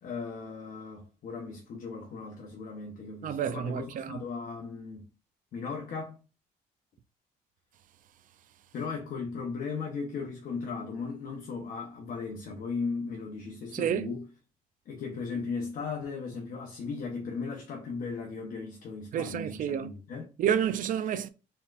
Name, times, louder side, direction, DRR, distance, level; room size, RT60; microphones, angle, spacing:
voice 1, 0.0-5.0 5.5-6.2 8.7-14.2 14.9-20.3, left 4 dB, 55° left, 1.0 m, -37 dB
voice 2, 3.2-4.2 13.7-14.1 19.1-19.9 20.4-21.3, right 9 dB, 50° right, 0.5 m, -29 dB
4.1 x 3.7 x 2.5 m
cardioid pair, 110°, 17 cm